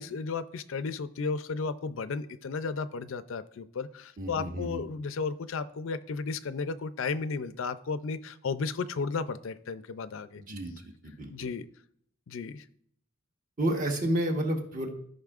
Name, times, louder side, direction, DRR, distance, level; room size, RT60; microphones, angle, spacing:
voice 1, 0.0-10.4 11.3-11.7 12.3-12.6, left 4 dB, 65° left, 13 dB, 0.4 m, -34 dB
voice 2, 4.2-4.8 10.4-11.5 13.6-14.9, right 1 dB, 40° right, 2 dB, 1.3 m, -31 dB
14.0 x 5.4 x 2.4 m, 0.68 s
head